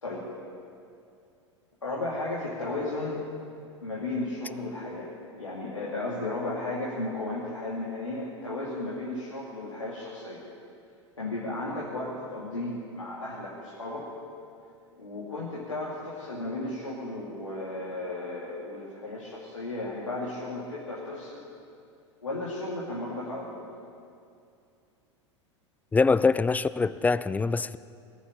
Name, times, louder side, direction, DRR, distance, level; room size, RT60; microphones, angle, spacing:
voice 1, 1.8-3.2 3.8-5.1 5.4-10.4 11.2-14.1 15.0-21.4 22.2-23.6, left 2 dB, 90° left, -7 dB, 2.7 m, -34 dB
voice 2, 25.9-27.8, left 4 dB, 10° left, 16 dB, 0.4 m, -24 dB
20.0 x 7.1 x 9.0 m, 2.5 s
figure-of-eight pair, 90°, 16 cm